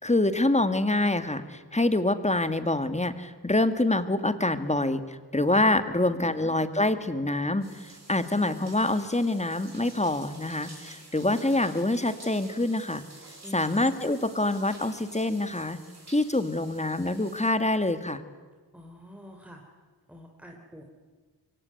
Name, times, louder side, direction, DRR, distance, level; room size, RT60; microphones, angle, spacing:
voice 1, 0.0-13.0 13.5-15.8 16.1-18.2, left 2 dB, 15° left, 11 dB, 1.8 m, -26 dB
sound 1, 7.6-17.5, right 2 dB, 40° right, 6.5 m, -50 dB
voice 2, 13.4-13.8 18.7-19.6 20.1-20.8, equal, 5° right, 1 dB, 3.2 m, -46 dB
24.0 x 24.0 x 9.6 m, 1.4 s
wide cardioid pair, 100°, 43 cm